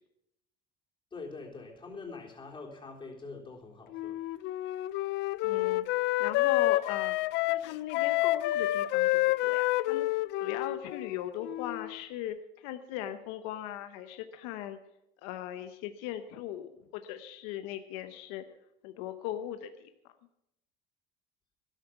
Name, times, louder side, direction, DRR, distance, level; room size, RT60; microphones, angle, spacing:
voice 1, 1.1-4.2, left 4 dB, 25° left, -1 dB, 3.6 m, -44 dB
Wind instrument woodwind instrument, 3.9-11.9, left 17 dB, 65° left, 0.5 m, -29 dB
voice 2, 5.4-7.2 7.5-14.8 15.2-18.5 18.8-20.1, left 11 dB, 90° left, 9 dB, 0.9 m, -39 dB
13.0 x 12.0 x 5.9 m, 0.83 s
cardioid pair, 115°, 20 cm